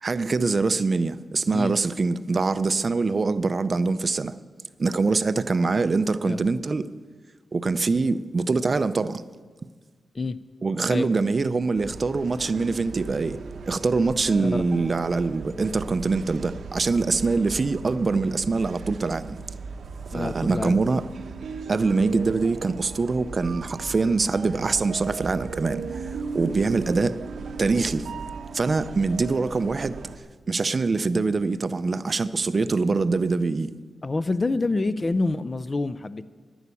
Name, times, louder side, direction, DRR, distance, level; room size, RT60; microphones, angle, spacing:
voice 1, 0.0-4.3 4.8-6.9 7.5-9.2 10.6-13.4 13.6-19.4 20.1-21.0 21.7-27.2 27.6-28.1 28.5-30.0 30.5-33.7, right 3 dB, 35° right, 0.5 m, -24 dB
sound 1, 11.8-30.2, right 4 dB, 75° right, 0.9 m, -37 dB
voice 2, 20.1-20.8 34.0-36.2, left 3 dB, 25° left, 0.4 m, -27 dB
11.5 x 11.0 x 8.3 m
wide cardioid pair, 160°, 0 cm